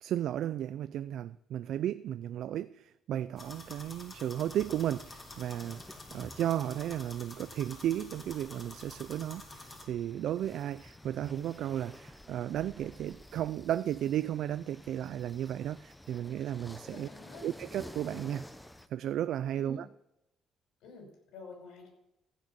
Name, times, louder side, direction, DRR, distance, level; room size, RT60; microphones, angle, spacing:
voice 1, 0.0-17.1 17.4-18.5 18.9-19.9, right 11 dB, 70° right, 0.4 m, -34 dB
sound 1, 3.4-9.8, left 2 dB, 25° left, 2.8 m, -49 dB
sound 2, 4.6-18.9, left 1 dB, 5° left, 0.8 m, -52 dB
voice 2, 16.8-17.4 19.5-19.8 20.8-21.9, left 4 dB, 85° left, 5.6 m, -49 dB
15.0 x 6.6 x 7.4 m
cardioid pair, 110°, 0 cm